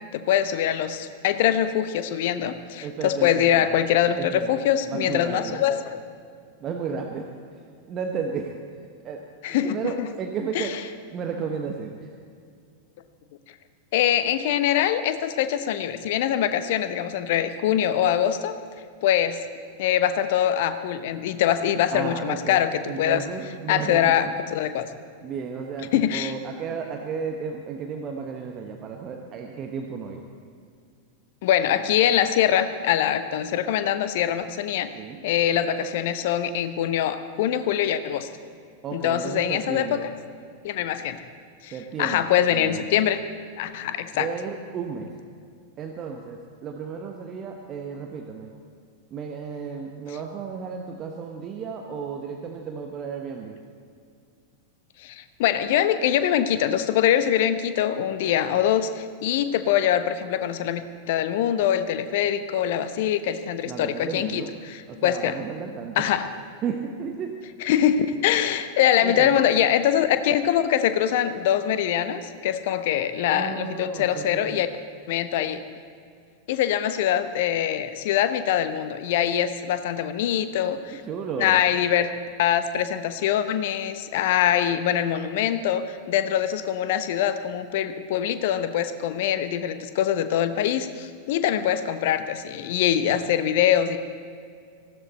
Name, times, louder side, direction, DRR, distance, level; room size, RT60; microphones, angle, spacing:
voice 1, 0.1-6.0 9.4-10.1 10.5-10.8 13.9-18.6 19.0-19.4 19.8-23.2 23.7-24.9 25.9-26.3 31.4-34.9 35.2-38.3 38.9-40.1 40.6-41.3 41.6-41.7 42.0-43.2 43.6-44.3 55.0-65.4 66.0-66.3 67.6-74.7 75.1-75.6 76.5-81.0 81.4-82.1 82.4-94.0, left 10 dB, 50° left, 11 dB, 0.9 m, -23 dB
voice 2, 2.8-3.8 4.2-4.5 4.8-5.6 6.6-7.3 7.9-8.6 9.0-9.2 9.5-10.7 11.1-12.1 21.9-24.3 25.2-30.2 35.0-35.2 38.8-40.1 41.7-42.9 44.1-45.1 45.8-48.5 49.1-53.6 63.6-64.5 64.9-66.0 66.6-67.3 69.0-69.4 73.3-74.6 81.0-81.6 93.1-93.2, right 6 dB, 30° right, 3 dB, 1.2 m, -33 dB
19.5 x 15.5 x 4.2 m, 2.2 s
figure-of-eight pair, 90°, 0 cm